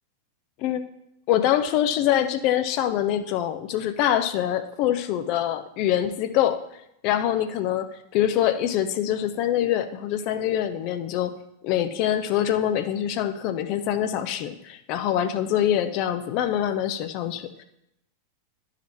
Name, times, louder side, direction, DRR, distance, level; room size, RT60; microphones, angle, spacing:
voice 1, 1.3-6.6 7.0-11.3 11.6-17.6, left 11 dB, 45° left, 10 dB, 0.5 m, -24 dB
11.5 x 4.9 x 4.3 m, 0.79 s
figure-of-eight pair, 90°, 0 cm